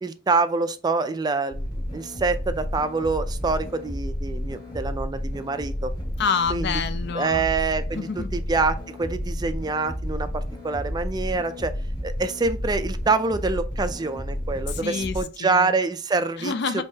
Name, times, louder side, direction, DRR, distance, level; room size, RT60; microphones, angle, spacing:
voice 1, 0.0-5.9 6.5-6.7 7.1-11.7 12.0-16.5, right 4 dB, 20° right, 0.3 m, -26 dB
sound 1, 1.5-15.2, equal, 20° left, 1.7 m, -31 dB
voice 2, 6.2-7.5 7.9-8.3 14.7-15.7 16.4-16.8, left 5 dB, 60° left, 0.5 m, -27 dB
5.5 x 3.0 x 2.7 m
head